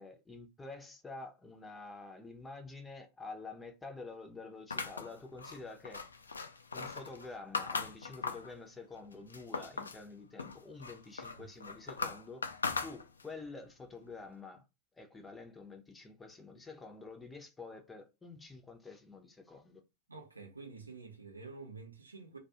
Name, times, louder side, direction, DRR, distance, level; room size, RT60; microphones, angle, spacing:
voice 1, 0.0-6.0 6.7-12.5 12.8-14.6 14.9-19.8, left 3 dB, 10° left, 0.6 m, -48 dB
sound 1, 4.7-8.5 9.0-10.0 10.4-13.4, left 4 dB, 75° left, 0.3 m, -39 dB
voice 2, 20.1-22.4, right 4 dB, 80° right, 0.7 m, -49 dB
2.3 x 2.2 x 2.8 m
figure-of-eight pair, 90°, 0 cm